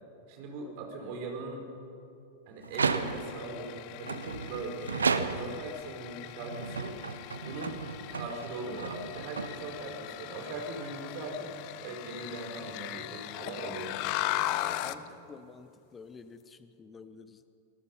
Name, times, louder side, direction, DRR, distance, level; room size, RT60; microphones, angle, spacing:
voice 1, 0.3-1.6 2.5-7.0 7.4-7.8 8.1-11.5 11.8-15.1, right 2 dB, 45° right, 2 dB, 4.9 m, -40 dB
sound 1, 2.6-3.5 4.0-5.7 6.4-10.0, right 5 dB, 75° right, 1.0 m, -34 dB
sound 2, 2.7-15.1, left 15 dB, 45° left, 0.8 m, -39 dB
voice 2, 14.8-17.6, left 5 dB, 20° left, 12 dB, 1.2 m, -50 dB
26.0 x 19.0 x 5.5 m, 2.6 s
figure-of-eight pair, 90°, 0 cm